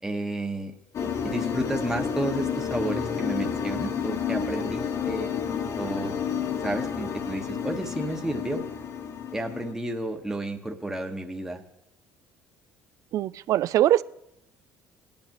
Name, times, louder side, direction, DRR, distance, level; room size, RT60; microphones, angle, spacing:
voice 1, 0.0-5.3 5.8-6.2 6.6-8.6 9.3-11.6, right 2 dB, 10° right, 2 dB, 1.3 m, -32 dB
sound 1, 0.9-9.7, left 7 dB, 55° left, 1.3 m, -30 dB
voice 2, 13.1-14.0, right 12 dB, 60° right, 20 dB, 0.3 m, -22 dB
18.5 x 10.5 x 3.0 m, 0.85 s
supercardioid pair, 75°, 6 cm